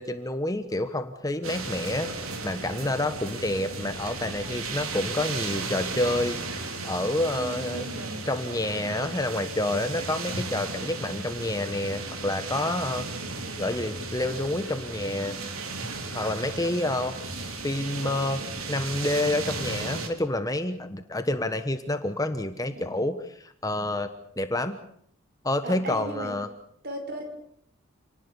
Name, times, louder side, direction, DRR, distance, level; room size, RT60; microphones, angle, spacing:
voice 1, 0.0-2.1 2.4-6.4 6.8-7.9 8.3-13.0 13.6-15.4 16.1-18.4 18.7-24.1 24.4-24.8 25.4-26.5, left 1 dB, 15° left, 9 dB, 1.2 m, -28 dB
sound 1, 1.4-20.1, right 3 dB, 90° right, 3.8 m, -35 dB
voice 2, 7.3-8.3 22.8-22.9 25.6-26.4 26.8-27.3, right 1 dB, 50° right, 5 dB, 5.4 m, -37 dB
28.5 x 19.0 x 7.0 m, 0.67 s
head